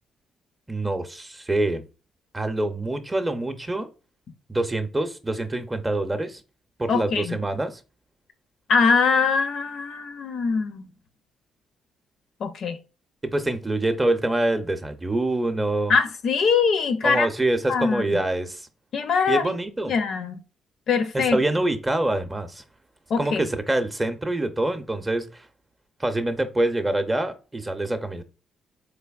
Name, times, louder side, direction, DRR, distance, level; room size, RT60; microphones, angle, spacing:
voice 1, 0.7-1.8 2.3-3.9 4.5-6.4 6.8-7.8 13.2-15.9 17.0-18.7 19.3-20.0 21.1-22.6 23.2-25.4 26.0-28.2, right 2 dB, 15° right, 0.6 m, -25 dB
voice 2, 6.9-7.4 8.7-10.8 12.4-12.8 15.9-17.3 17.7-18.2 18.9-19.5 19.9-20.4 20.9-21.4 23.1-23.4, left 5 dB, 65° left, 0.5 m, -22 dB
3.9 x 3.3 x 2.3 m
cardioid pair, 90°, 0 cm